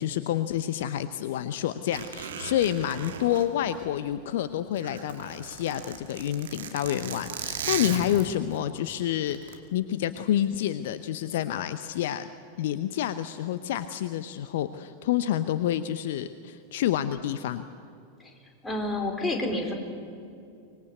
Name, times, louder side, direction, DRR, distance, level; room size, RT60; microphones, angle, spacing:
voice 1, 0.0-12.3 12.6-17.6, left 11 dB, 55° left, 13 dB, 0.8 m, -28 dB
Zipper (clothing), 1.9-4.3 4.6-8.6 9.3-9.5, right 7 dB, 60° right, 2.3 m, -37 dB
voice 2, 18.6-19.7, left 2 dB, 10° left, 2 dB, 4.0 m, -28 dB
25.0 x 21.0 x 8.2 m, 2.4 s
figure-of-eight pair, 90°, 0 cm